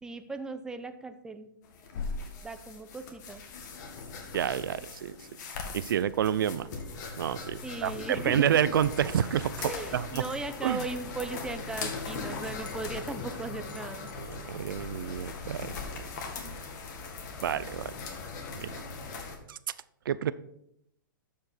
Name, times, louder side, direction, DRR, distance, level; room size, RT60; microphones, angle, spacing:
voice 1, 0.0-1.5 2.4-3.4 7.6-8.5 9.7-14.1, right 3 dB, 5° right, 9 dB, 0.6 m, -38 dB
sound 1, 1.6-19.4, left 4 dB, 55° left, 1.9 m, -40 dB
voice 2, 4.3-5.2 5.7-6.7 7.2-10.2 10.6-10.9 14.2-16.0 17.4-18.0 18.6-18.8 19.5-19.6 20.1-20.3, right 9 dB, 75° right, 17 dB, 0.4 m, -29 dB
sound 2, 5.5-6.0 6.8-7.0 7.4-7.5 8.6-9.2 10.3-11.1 12.5-13.0 13.7-14.2, left 6 dB, 70° left, 1.1 m, -54 dB
13.0 x 5.1 x 4.4 m, 0.78 s
hypercardioid pair, 130°, 11 cm